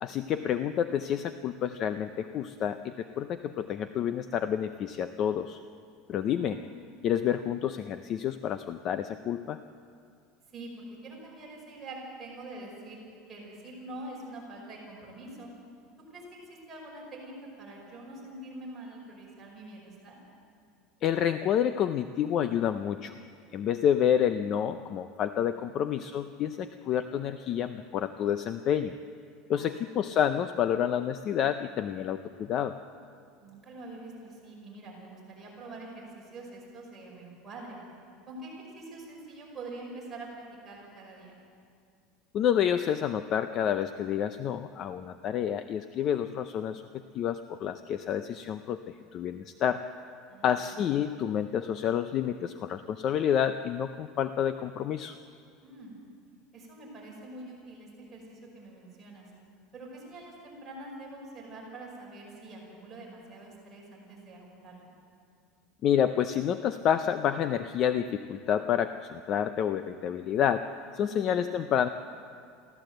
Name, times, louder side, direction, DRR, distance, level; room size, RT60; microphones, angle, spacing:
voice 1, 0.0-5.6 6.1-6.6 7.0-9.6 21.0-23.1 23.5-28.9 29.5-32.7 42.3-49.8 50.4-55.1 65.8-70.7 70.9-71.9, left 9 dB, 30° left, 10 dB, 0.5 m, -29 dB
voice 2, 6.1-6.7 10.5-13.0 13.3-15.5 16.1-20.2 25.5-26.0 29.5-30.0 33.4-37.8 38.3-41.4 50.3-50.8 55.6-55.9 56.5-59.3 59.7-64.9 71.0-71.4, right 2 dB, 10° right, -5 dB, 5.4 m, -45 dB
23.5 x 15.5 x 7.8 m, 2.3 s
cardioid pair, 175°, 0 cm